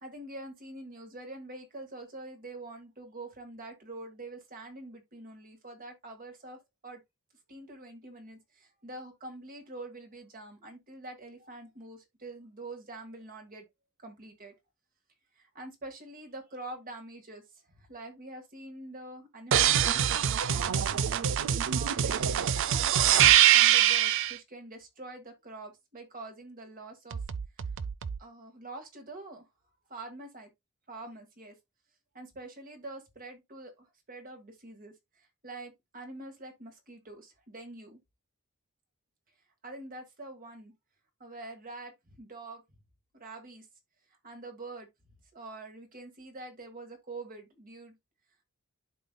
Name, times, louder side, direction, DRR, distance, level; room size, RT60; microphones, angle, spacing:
voice 1, 0.0-7.0 7.5-13.7 14.0-14.5 15.4-20.1 20.5-21.1 21.7-27.2 28.2-29.5 29.9-30.5 30.9-31.6 32.1-38.0 39.6-40.7 41.2-42.6 43.1-43.7 44.2-44.9 45.3-48.0, right 2 dB, 40° right, 1.8 m, -45 dB
sound 1, 19.5-24.3 27.1-28.2, right 10 dB, 60° right, 0.4 m, -24 dB
11.5 x 4.0 x 2.2 m
head